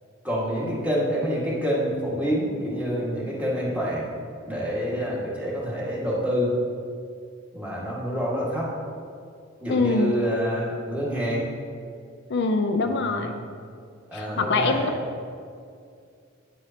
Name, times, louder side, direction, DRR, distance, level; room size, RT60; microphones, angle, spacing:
voice 1, 0.2-4.1 4.5-6.5 7.5-8.7 9.6-11.5 13.0-13.3 14.1-14.9, equal, 5° right, -7 dB, 1.7 m, -27 dB
voice 2, 9.7-10.2 12.3-13.3 14.1-14.9, left 3 dB, 55° left, 5 dB, 0.5 m, -23 dB
9.3 x 8.1 x 2.8 m, 2.3 s
head